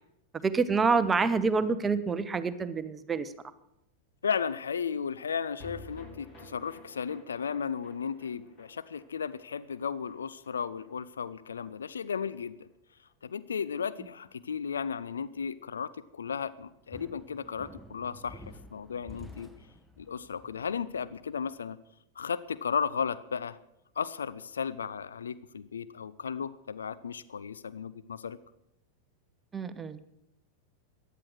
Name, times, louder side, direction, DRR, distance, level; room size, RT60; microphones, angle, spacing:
voice 1, 0.4-3.3 29.5-30.1, right 4 dB, 15° right, 13 dB, 0.8 m, -27 dB
voice 2, 4.2-12.7 13.2-18.4 18.7-19.5 20.0-21.8 22.2-23.6 24.0-28.4, left 6 dB, 70° left, 17 dB, 0.4 m, -35 dB
sound 1, 5.6-12.0 12.3-12.4 12.7-12.8, left 1 dB, 30° left, 3.6 m, -52 dB
sound 2, 16.6-21.5, left 1 dB, ahead, 1.1 m, -50 dB
14.5 x 10.5 x 6.3 m, 0.84 s
figure-of-eight pair, 90°, 0 cm